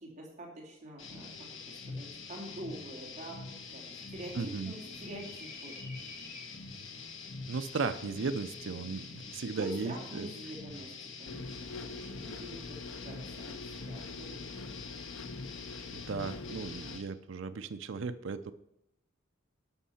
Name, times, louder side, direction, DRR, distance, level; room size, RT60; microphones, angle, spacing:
voice 1, 0.0-1.3 1.7-5.8 9.5-10.9 11.2-14.6, right 1 dB, 35° right, -2 dB, 2.6 m, -46 dB
sound 1, 1.0-17.0, left 4 dB, 65° left, 1.6 m, -45 dB
sound 2, 3.6-9.2, left 2 dB, 45° left, 3.1 m, -54 dB
voice 2, 4.3-4.7 7.5-10.3 15.9-18.5, right 4 dB, 65° right, 9 dB, 0.5 m, -36 dB
sound 3, 11.2-17.0, left 4 dB, 80° left, 0.6 m, -45 dB
11.5 x 6.3 x 5.7 m, 0.81 s
head